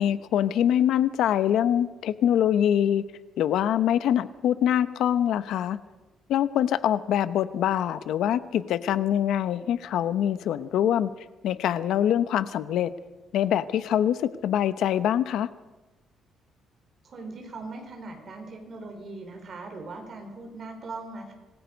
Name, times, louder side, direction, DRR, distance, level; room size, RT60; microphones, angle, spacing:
voice 1, 0.0-3.0 3.4-5.8 6.3-11.1 11.4-12.9 13.3-15.5, left 10 dB, 70° left, 14 dB, 0.9 m, -24 dB
voice 2, 17.0-21.3, right 3 dB, 35° right, 3 dB, 4.5 m, -40 dB
26.0 x 20.0 x 5.3 m, 1.2 s
cardioid pair, 170°, 0 cm